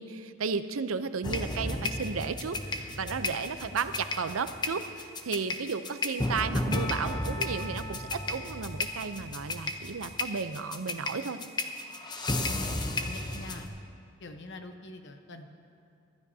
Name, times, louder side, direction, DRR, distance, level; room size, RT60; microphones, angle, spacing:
voice 1, 0.0-11.4, right 5 dB, 85° right, 11 dB, 0.6 m, -34 dB
sound 1, 1.2-13.7, left 2 dB, 20° left, 0.8 m, -33 dB
voice 2, 12.4-13.7 14.2-15.5, left 2 dB, 60° left, 6 dB, 1.0 m, -44 dB
24.5 x 12.5 x 2.8 m, 2.6 s
head